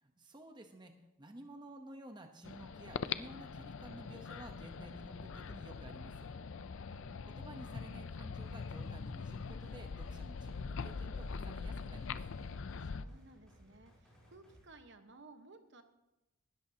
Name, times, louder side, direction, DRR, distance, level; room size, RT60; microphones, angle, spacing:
voice 1, 0.0-6.3 6.9-12.2, right 1 dB, 20° right, 5 dB, 0.9 m, -53 dB
sound 1, 2.4-13.0, left 5 dB, 60° left, 0.5 m, -43 dB
voice 2, 6.7-7.4 10.2-10.5 12.8-15.8, right 3 dB, 55° right, 7 dB, 1.1 m, -59 dB
sound 2, 8.4-14.6, equal, 5° left, 5.5 m, -63 dB
19.5 x 13.0 x 2.8 m, 0.96 s
head